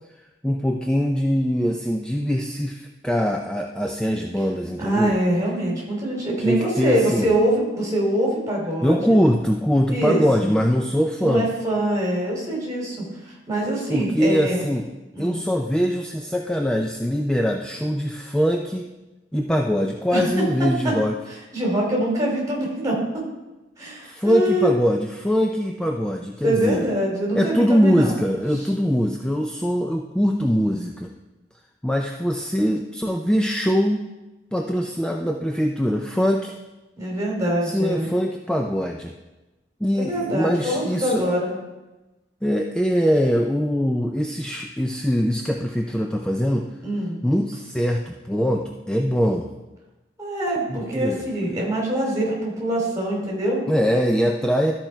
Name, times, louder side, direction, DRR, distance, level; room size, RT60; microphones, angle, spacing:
voice 1, 0.4-5.2 6.4-7.3 8.8-11.5 13.9-14.9 15.2-18.9 19.3-21.1 24.0-26.8 27.3-31.1 31.8-34.0 34.5-36.5 37.6-39.1 39.8-41.2 42.4-46.7 47.2-49.5 50.7-51.2 53.7-54.7, equal, 5° left, 2 dB, 0.4 m, -22 dB
voice 2, 4.8-9.2 9.9-10.5 11.2-13.1 13.5-14.6 15.1-15.4 20.1-20.2 20.8-20.9 21.5-23.2 23.8-24.7 26.4-28.2 37.0-38.1 39.9-41.5 46.8-47.2 50.2-53.6, right 1 dB, 20° right, -2 dB, 2.8 m, -24 dB
13.0 x 4.5 x 4.4 m, 1.1 s
head